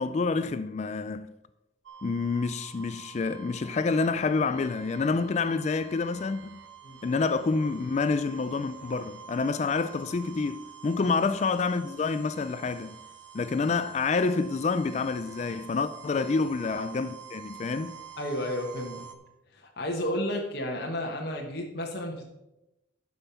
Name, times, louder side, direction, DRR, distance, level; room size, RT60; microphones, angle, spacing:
voice 1, 0.0-1.3 2.0-6.6 7.0-13.0 13.3-18.0, left 4 dB, 35° left, 0.3 m, -28 dB
sound 1, 1.9-19.2, right 8 dB, 85° right, 1.0 m, -48 dB
voice 2, 18.2-19.1 19.5-22.2, left 1 dB, 55° left, 1.3 m, -32 dB
11.0 x 5.5 x 5.7 m
head